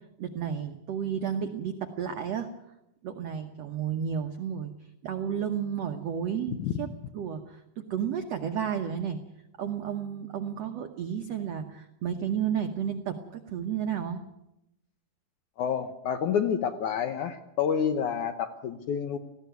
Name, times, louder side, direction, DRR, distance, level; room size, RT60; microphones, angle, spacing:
voice 1, 0.2-2.5 3.0-4.7 5.0-6.9 7.1-9.2 9.6-14.2, right 8 dB, 75° right, 6 dB, 1.4 m, -32 dB
voice 2, 6.5-6.9 15.6-19.2, left 7 dB, 70° left, 8 dB, 1.9 m, -29 dB
19.0 x 15.5 x 9.3 m, 0.86 s
omnidirectional pair, 4.5 m